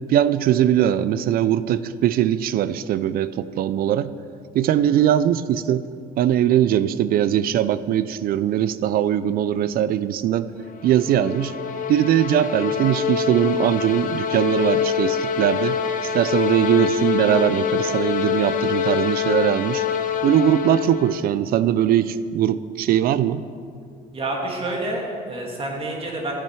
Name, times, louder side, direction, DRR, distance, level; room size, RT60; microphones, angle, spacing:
voice 1, 0.1-4.1 4.5-5.8 6.2-10.5 10.8-11.5 11.9-19.8 20.2-23.4, right 10 dB, 60° right, 16 dB, 0.4 m, -21 dB
sound 1, 10.7-21.2, left 8 dB, 50° left, 0.9 m, -25 dB
voice 2, 24.1-26.3, right 2 dB, 35° right, 0 dB, 2.3 m, -28 dB
14.0 x 7.5 x 4.7 m, 2.3 s
cardioid pair, 110°, 17 cm